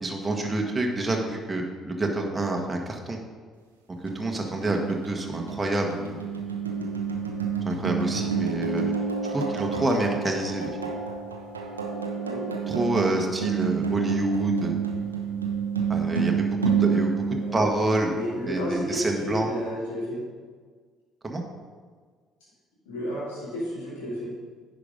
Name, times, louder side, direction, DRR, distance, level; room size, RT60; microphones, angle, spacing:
voice 1, 0.0-3.2 4.1-6.2 7.6-8.9 9.2-10.7 12.7-14.7 15.9-18.1 18.5-19.5 21.2-21.4, right 2 dB, 20° right, 1 dB, 1.4 m, -27 dB
sound 1, 4.1-18.3, right 5 dB, 90° right, 0.8 m, -29 dB
voice 2, 18.1-20.2 22.8-24.3, equal, 75° left, -9 dB, 2.6 m, -32 dB
9.9 x 5.2 x 5.3 m, 1.6 s
figure-of-eight pair, 50°, 0 cm